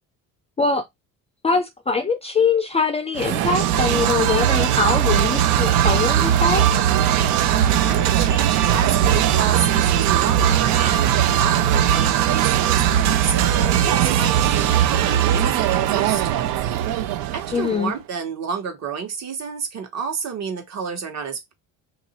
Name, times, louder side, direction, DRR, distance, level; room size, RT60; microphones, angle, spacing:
voice 1, 1.4-6.7 17.5-17.9, left 4 dB, 20° left, 0.4 m, -22 dB
sound 1, 3.1-17.8, right 10 dB, 85° right, 0.6 m, -19 dB
voice 2, 7.7-16.6 17.3-21.5, right 6 dB, 50° right, 1.1 m, -30 dB
2.9 x 2.6 x 4.1 m
cardioid pair, 145°, 34 cm